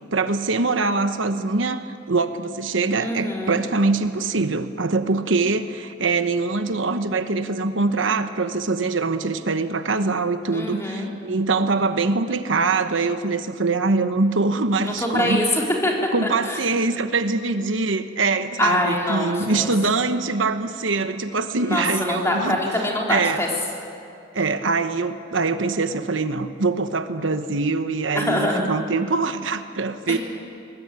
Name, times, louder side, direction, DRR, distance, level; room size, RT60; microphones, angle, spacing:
voice 1, 0.1-15.5 16.1-22.6 23.1-23.4 24.3-30.2, right 3 dB, 80° right, 9 dB, 1.1 m, -23 dB
voice 2, 3.0-3.6 10.5-11.1 14.8-15.9 16.2-16.6 18.6-19.7 21.6-23.5 28.1-28.7, left 1 dB, 15° left, -2 dB, 3.9 m, -24 dB
23.5 x 19.5 x 9.2 m, 2.5 s
head